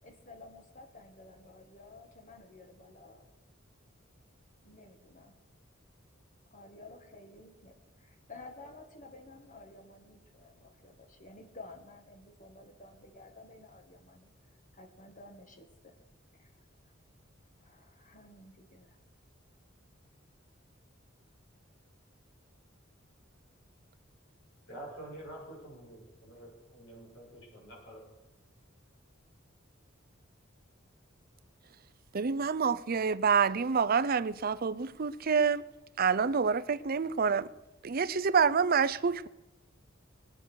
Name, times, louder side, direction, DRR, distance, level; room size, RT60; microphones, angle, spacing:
voice 1, 0.0-3.3 4.6-5.4 6.5-14.3 14.7-15.9 16.3-16.5 16.9-17.0 17.6-19.0, left 2 dB, 40° left, 1.9 m, -53 dB
voice 2, 24.7-28.0, right 1 dB, 70° left, 7.7 m, -47 dB
voice 3, 32.1-35.7 36.0-37.5 37.8-39.3, right 6 dB, 50° right, 0.6 m, -27 dB
20.5 x 9.8 x 6.4 m
head